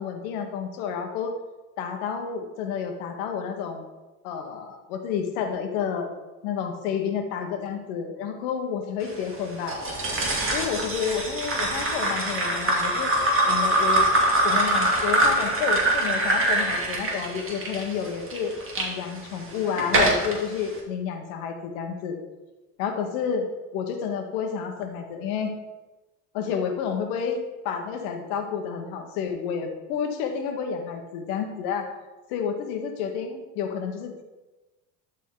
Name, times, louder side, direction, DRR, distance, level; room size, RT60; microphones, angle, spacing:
voice 1, 0.0-1.3 1.8-3.8 4.2-6.1 6.4-9.8 10.5-13.1 13.4-14.1 14.4-22.1 22.8-23.5 23.7-25.5 26.3-31.9 32.3-34.2, left 7 dB, 75° left, 4 dB, 1.4 m, -30 dB
sound 1, 9.7-18.9 19.4-20.4, right 1 dB, 30° right, 2.3 m, -23 dB
12.0 x 4.1 x 3.9 m, 1.1 s
hypercardioid pair, 70°, 44 cm